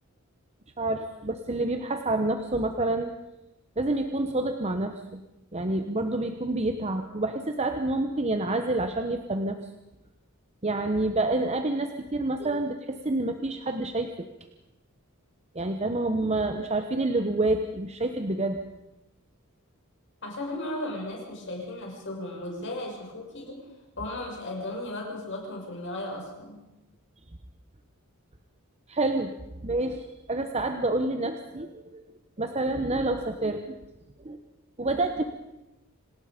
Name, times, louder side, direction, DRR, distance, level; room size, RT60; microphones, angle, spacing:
voice 1, 0.8-3.1 3.8-5.2 5.5-9.6 10.6-14.3 15.5-18.6 28.9-29.3 29.6-30.0 30.3-32.0 32.4-33.8 34.2-34.4 34.8-35.2, right 2 dB, 30° right, 6 dB, 1.0 m, -28 dB
voice 2, 20.2-23.6 24.0-26.6, left 1 dB, 55° left, 0 dB, 6.2 m, -35 dB
26.5 x 19.0 x 5.2 m, 0.96 s
head